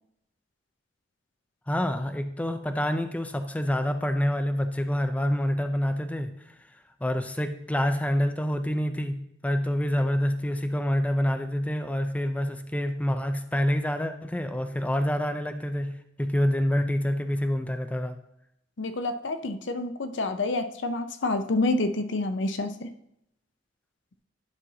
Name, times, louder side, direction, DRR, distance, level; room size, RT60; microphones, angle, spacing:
voice 1, 1.7-6.5 7.0-18.1, equal, 10° left, 7 dB, 0.4 m, -27 dB
voice 2, 18.8-22.9, left 2 dB, 80° left, 9 dB, 0.6 m, -28 dB
11.0 x 5.5 x 2.8 m, 0.79 s
head